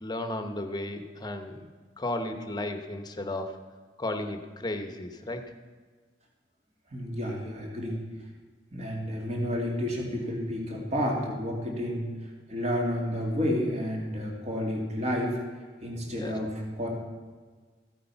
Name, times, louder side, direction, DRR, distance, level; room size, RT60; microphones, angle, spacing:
voice 1, 0.0-1.6 2.0-3.6 4.0-5.5 16.0-16.4, left 1 dB, 25° left, 7 dB, 1.0 m, -34 dB
voice 2, 6.9-8.0 8.7-12.1 12.5-15.4 15.8-16.5 16.8-16.9, equal, 40° right, -1 dB, 2.4 m, -30 dB
15.0 x 8.5 x 5.7 m, 1.5 s
head